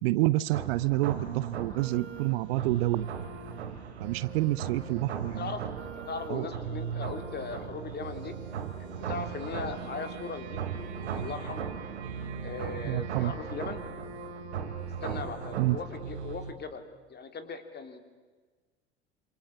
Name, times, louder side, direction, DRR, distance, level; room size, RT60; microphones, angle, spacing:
voice 1, 0.0-3.1 4.0-5.4 6.3-6.5 12.8-13.3 15.6-15.8, right 18 dB, 60° right, 17 dB, 0.8 m, -28 dB
sound 1, 0.5-16.5, right 7 dB, 75° right, 2.8 m, -37 dB
voice 2, 5.1-8.3 8.8-11.7 12.4-13.8 15.0-18.0, left 5 dB, 30° left, 8 dB, 3.4 m, -39 dB
27.5 x 27.5 x 7.2 m, 1.4 s
figure-of-eight pair, 75°, 34 cm